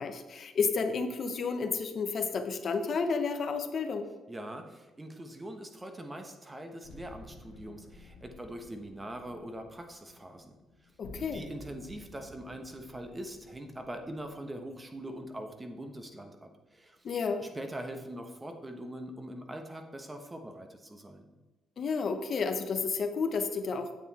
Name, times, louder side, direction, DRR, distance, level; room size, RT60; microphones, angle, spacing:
voice 1, 0.0-4.1 11.0-11.4 17.0-17.4 21.8-23.9, left 4 dB, 55° left, 7 dB, 0.9 m, -31 dB
voice 2, 4.3-10.9 11.2-17.1 17.4-21.3, right 1 dB, 20° right, 5 dB, 1.2 m, -43 dB
sound 1, 6.8-15.8, left 2 dB, 90° left, 1.6 m, -53 dB
8.8 x 7.1 x 4.2 m, 1.2 s
cardioid pair, 90°, 0 cm